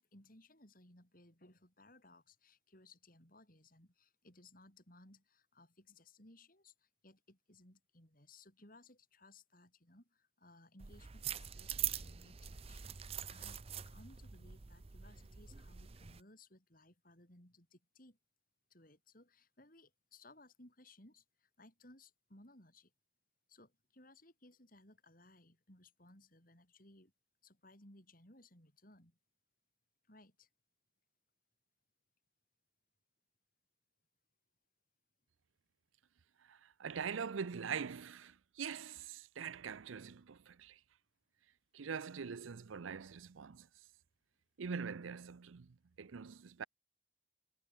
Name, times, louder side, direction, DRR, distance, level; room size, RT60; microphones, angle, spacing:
voice 1, 0.0-18.2 18.7-22.9 23.5-27.1 27.4-29.2 30.1-30.5, left 2 dB, 45° left, 7.4 m, -62 dB
sound 1, 10.8-16.2, right 10 dB, 30° right, 0.5 m, -44 dB
voice 2, 36.5-40.8 41.7-43.7 44.6-46.6, right 6 dB, 85° right, 0.6 m, -43 dB
head